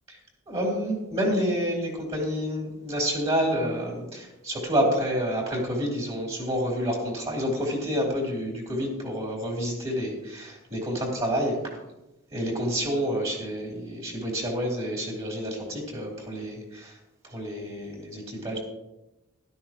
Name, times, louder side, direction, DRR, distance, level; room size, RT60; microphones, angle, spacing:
voice 1, 0.5-11.6 12.3-17.0 17.2-18.6, equal, 30° right, -2 dB, 3.6 m, -28 dB
16.5 x 12.5 x 3.0 m, 0.96 s
head